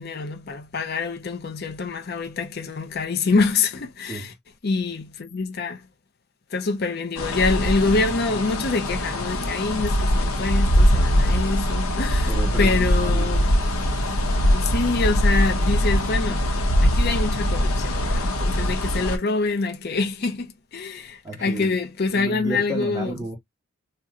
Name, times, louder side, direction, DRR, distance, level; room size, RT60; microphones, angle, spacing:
voice 1, 0.0-4.3 4.6-5.8 6.5-12.3 12.6-13.5 14.5-16.5 16.8-23.1, left 3 dB, 50° left, 0.5 m, -25 dB
sound 1, 7.2-19.2, equal, 85° left, 0.7 m, -22 dB
voice 2, 12.3-13.4 13.7-14.1 21.2-21.8 22.1-23.4, right 2 dB, 15° right, 1.3 m, -33 dB
2.8 x 2.1 x 3.6 m
head